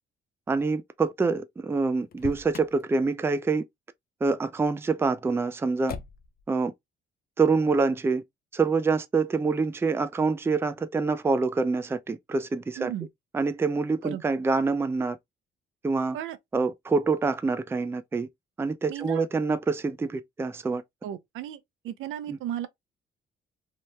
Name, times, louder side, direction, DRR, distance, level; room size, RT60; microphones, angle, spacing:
voice 1, 0.5-3.6 4.2-5.9 6.5-6.7 7.4-8.2 8.5-12.9 13.3-15.2 15.8-16.2 16.5-18.3 18.6-20.8 22.3-22.4, right 4 dB, 10° right, 0.3 m, -26 dB
Motor vehicle (road), 2.1-2.8 5.9-6.4, left 7 dB, 50° left, 0.5 m, -39 dB
voice 2, 12.8-13.1 14.0-14.2 16.1-16.4 18.9-19.2 21.0-22.7, right 11 dB, 80° right, 0.5 m, -35 dB
2.8 x 2.2 x 3.1 m
cardioid pair, 90°, 20 cm